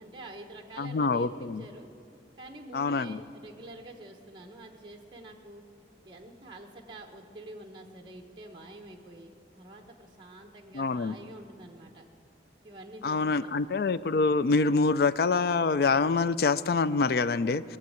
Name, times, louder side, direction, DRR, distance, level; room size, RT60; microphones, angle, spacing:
voice 1, 0.0-1.9 2.4-5.6 6.0-12.0 12.6-13.5, right 2 dB, 25° right, 3 dB, 1.1 m, -47 dB
voice 2, 0.8-1.6 2.7-3.2 10.7-11.1 13.0-17.8, left 4 dB, 60° left, 16 dB, 0.4 m, -26 dB
20.5 x 7.3 x 9.3 m, 2.4 s
head